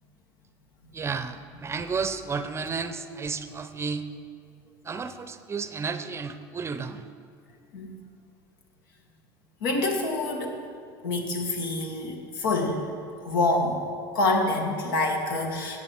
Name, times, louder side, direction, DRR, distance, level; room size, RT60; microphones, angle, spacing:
voice 1, 0.9-4.1 4.8-7.1, right 5 dB, 25° right, 11 dB, 0.6 m, -32 dB
voice 2, 9.6-10.6 11.0-12.8 13.2-13.8 14.1-15.8, left 2 dB, 85° left, 2 dB, 1.6 m, -26 dB
13.5 x 8.0 x 4.5 m, 2.3 s
supercardioid pair, 95°, 11 cm